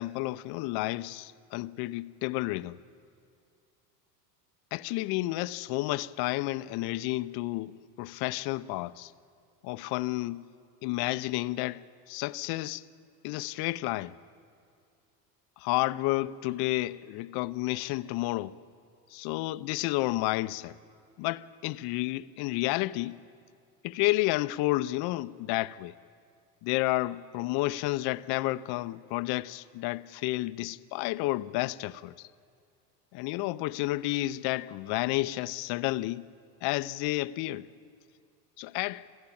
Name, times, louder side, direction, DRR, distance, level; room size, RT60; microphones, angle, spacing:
voice 1, 0.0-2.8 4.7-9.1 9.6-10.4 10.8-11.8 12.1-12.8 13.2-14.1 15.6-18.5 19.1-20.8 21.2-23.2 23.8-25.9 26.6-32.3 33.1-36.3 36.6-37.7 38.6-39.1, left 18 dB, 55° left, 0.7 m, -31 dB
27.5 x 14.5 x 8.7 m
hypercardioid pair, 100°, 48 cm